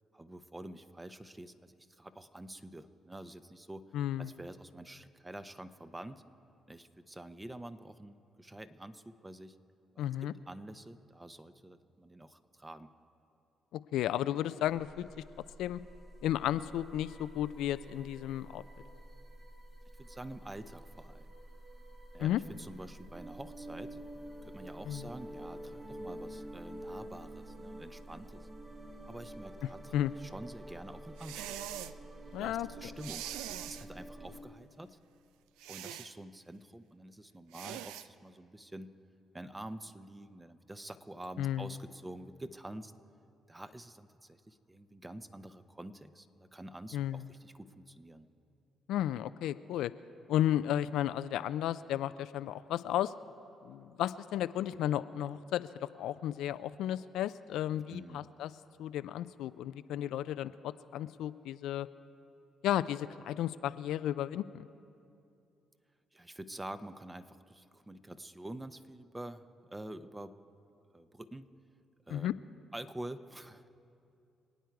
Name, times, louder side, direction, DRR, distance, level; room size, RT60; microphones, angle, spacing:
voice 1, 0.1-3.8 4.2-6.2 6.7-9.6 9.9-12.9 20.0-21.3 22.1-24.0 24.4-28.5 29.1-31.6 32.3-35.0 35.7-38.9 39.3-42.9 43.5-48.3 57.9-58.3 66.1-70.3 70.9-71.5 72.1-72.3 72.7-73.7, right 1 dB, 20° right, 11 dB, 0.8 m, -47 dB
voice 2, 3.9-4.3 10.0-10.3 13.7-15.0 15.6-15.8 16.2-18.6 22.2-22.4 24.9-25.1 29.9-30.1 32.3-32.7 41.4-41.7 46.9-47.3 48.9-49.9 50.3-53.1 53.6-58.5 58.8-61.9 62.6-64.7 72.1-72.3, left 12 dB, 80° left, 14 dB, 0.3 m, -33 dB
sound 1, 14.7-34.4, right 1 dB, 45° right, 2.4 m, -48 dB
sound 2, 31.2-32.0 33.0-33.9 35.6-36.1 37.5-38.1, right 12 dB, 90° right, 0.4 m, -42 dB
26.5 x 9.1 x 4.7 m, 2.6 s
supercardioid pair, 60°, 0 cm